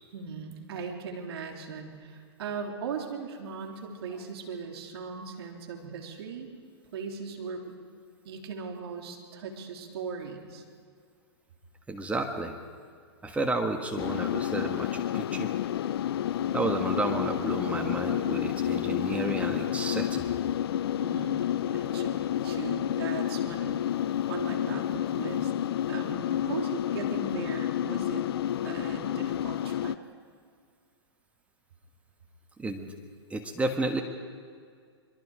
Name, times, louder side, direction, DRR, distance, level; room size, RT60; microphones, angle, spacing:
voice 1, 0.1-6.5 6.9-7.8 8.3-10.6 20.9-25.5 25.9-28.2 28.6-30.0, right 5 dB, 65° right, 2 dB, 3.5 m, -39 dB
voice 2, 11.9-12.6 13.2-15.5 16.5-20.2 32.6-32.9 33.3-34.0, right 2 dB, 10° right, 3 dB, 1.6 m, -31 dB
sound 1, 14.0-30.0, left 10 dB, 60° left, 0.6 m, -30 dB
24.0 x 23.0 x 5.0 m, 2.1 s
hypercardioid pair, 120°, 14 cm